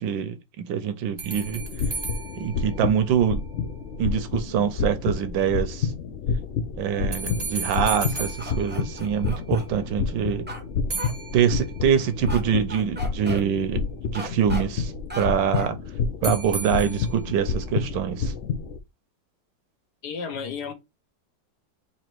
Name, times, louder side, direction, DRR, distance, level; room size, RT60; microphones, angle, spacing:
voice 1, 0.0-1.6 2.3-3.4 4.0-5.9 6.7-10.5 11.3-13.8 14.1-15.8 16.2-18.3, right 8 dB, 80° right, 1.4 m, -25 dB
sound 1, 1.2-3.6 7.1-9.6 10.9-12.1 16.2-17.5, right 4 dB, 30° right, 0.9 m, -36 dB
sound 2, 1.5-18.8, left 5 dB, 80° left, 0.6 m, -29 dB
sound 3, 8.1-9.7 10.5-10.6 11.0-11.1 12.3-12.4 12.7-13.4 14.1-14.6 15.1-15.3 15.5-15.7, right 1 dB, 10° right, 0.5 m, -36 dB
voice 2, 20.0-20.7, left 6 dB, 65° left, 1.4 m, -32 dB
4.0 x 2.9 x 4.4 m
omnidirectional pair, 2.0 m